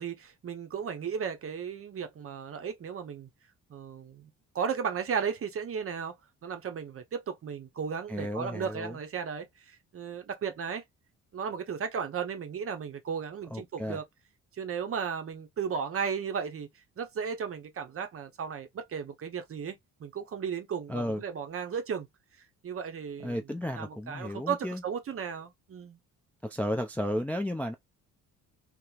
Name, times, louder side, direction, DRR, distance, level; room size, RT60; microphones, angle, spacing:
voice 1, 0.0-3.3 3.7-4.3 4.5-6.1 6.4-10.8 11.3-14.0 14.6-16.7 17.0-22.1 22.6-23.4 23.7-26.0, right 7 dB, 40° right, 0.6 m, -35 dB
voice 2, 8.1-9.0 13.5-14.0 20.9-21.2 23.2-24.8 26.4-27.7, left 1 dB, 5° left, 0.3 m, -33 dB
3.0 x 2.0 x 2.3 m
cardioid pair, 75°, 34 cm